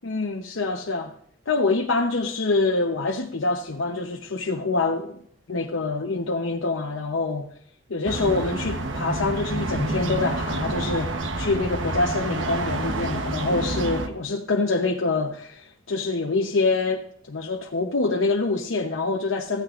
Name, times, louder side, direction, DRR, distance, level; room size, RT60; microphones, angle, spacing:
voice 1, 0.0-1.1 1.5-5.2 5.5-7.5 7.9-19.6, left 3 dB, 90° left, 0.9 m, -25 dB
sound 1, 8.1-14.1, right 2 dB, 80° right, 1.1 m, -28 dB
15.0 x 8.9 x 2.5 m
head